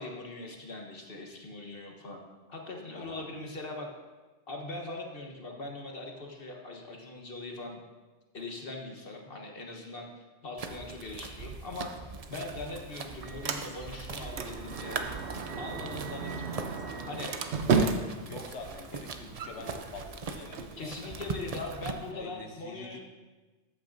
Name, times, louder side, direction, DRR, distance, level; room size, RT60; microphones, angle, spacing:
voice 1, 0.0-2.2 2.5-3.9 4.5-7.8 8.3-10.1 10.4-11.9 12.3-15.0 15.6-16.7 17.1-17.3 20.8-23.0, left 2 dB, 55° left, 1 dB, 1.4 m, -41 dB
sound 1, 10.6-21.9, right 4 dB, 40° right, 0.6 m, -41 dB
Sliding door, 12.1-22.1, right 5 dB, 70° right, 1.0 m, -35 dB
Wind instrument woodwind instrument, 13.2-17.8, right 5 dB, 30° left, 3.4 m, -51 dB
voice 2, 17.7-21.4 22.1-23.0, left 3 dB, 80° left, 3 dB, 1.2 m, -45 dB
13.5 x 8.7 x 2.6 m, 1.3 s
omnidirectional pair, 1.2 m